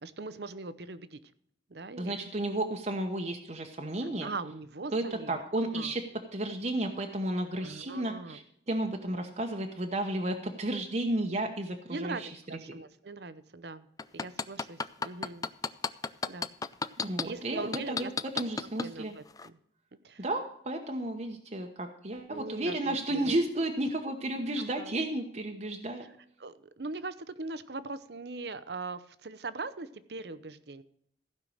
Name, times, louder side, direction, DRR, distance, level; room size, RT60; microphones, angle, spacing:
voice 1, 0.0-1.2 1.7-2.2 4.2-5.4 5.7-5.9 7.6-8.4 11.9-13.9 14.1-15.5 16.3-16.5 17.0-18.1 18.8-19.6 20.0-20.2 22.3-23.4 24.6-24.9 26.4-30.8, right 3 dB, 65° right, 14 dB, 0.8 m, -41 dB
voice 2, 2.0-4.3 4.9-6.0 6.3-8.4 8.7-12.3 17.0-18.1 18.3-19.1 20.2-26.0, right 1 dB, 40° right, 3 dB, 1.1 m, -32 dB
sound 1, 14.0-17.2 17.7-18.9 19.4-19.5, left 4 dB, 20° left, 0.4 m, -31 dB
15.5 x 5.7 x 6.4 m, 0.68 s
head